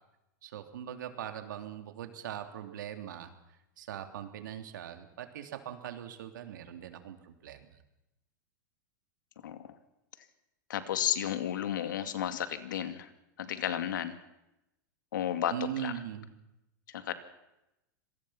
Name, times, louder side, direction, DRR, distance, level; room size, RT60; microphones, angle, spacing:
voice 1, 0.4-3.3 3.8-7.8 15.5-16.3, right 10 dB, 80° right, 7 dB, 3.2 m, -41 dB
voice 2, 9.4-9.8 10.7-13.1 13.4-14.2 15.1-15.9 16.9-17.1, left 10 dB, 85° left, 10 dB, 2.3 m, -33 dB
25.5 x 19.5 x 5.9 m, 0.90 s
hypercardioid pair, 130°, 10 cm